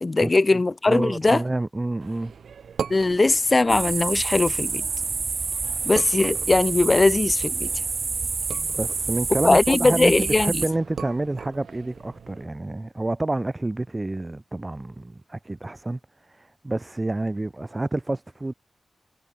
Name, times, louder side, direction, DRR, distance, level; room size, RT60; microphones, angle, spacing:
voice 1, 0.0-1.4 2.9-4.9 5.8-7.7 9.4-10.6, left 3 dB, 25° left, 0.7 m, -20 dB
voice 2, 0.9-2.3 8.5-10.1 10.4-16.0 16.3-18.5, right 2 dB, 15° right, 0.7 m, -28 dB
sound 1, 2.0-12.5, right 7 dB, 75° right, 5.4 m, -40 dB
sound 2, 3.7-10.7, right 4 dB, 40° right, 0.4 m, -28 dB
wide cardioid pair, 150°, 0 cm